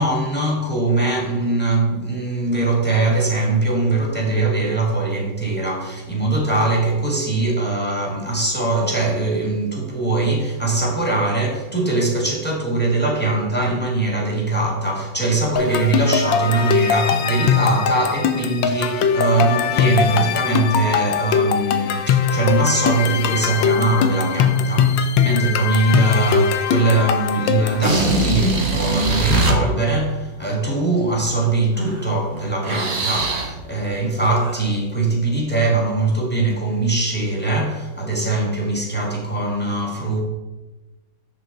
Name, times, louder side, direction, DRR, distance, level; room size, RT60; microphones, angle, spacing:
voice 1, 0.0-40.2, right 2 dB, 5° left, 1.5 m, -21 dB
sound 1, 15.6-27.9, left 7 dB, 70° left, 1.2 m, -20 dB
sound 2, 27.7-29.5 31.8-32.0 32.4-33.6 34.4-34.6, right 2 dB, 35° right, 1.3 m, -21 dB
6.9 x 6.7 x 3.8 m
omnidirectional pair, 2.2 m